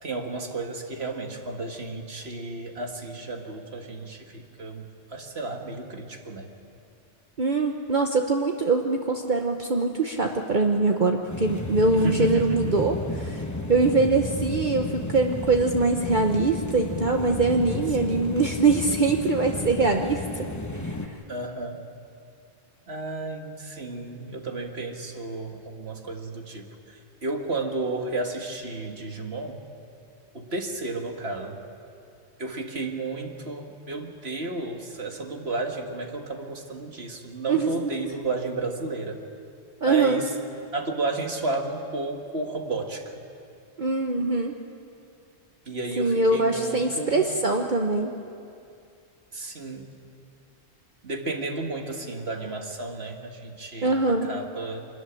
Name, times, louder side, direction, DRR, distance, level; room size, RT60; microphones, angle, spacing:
voice 1, 0.0-6.5 11.9-12.9 17.9-18.3 21.3-21.8 22.9-29.6 30.3-31.6 32.4-39.2 39.8-40.3 40.7-43.3 45.7-47.3 49.3-49.9 51.0-54.9, right 3 dB, 65° right, 3 dB, 2.0 m, -32 dB
voice 2, 7.4-20.5 20.8-21.1 37.5-37.7 39.8-40.2 43.8-44.6 46.0-48.1 53.8-54.4, right 3 dB, 45° right, 3 dB, 1.1 m, -23 dB
sound 1, 11.3-21.1, left 2 dB, 15° left, 1.0 m, -33 dB
24.5 x 14.0 x 10.0 m, 2.5 s
omnidirectional pair, 1.2 m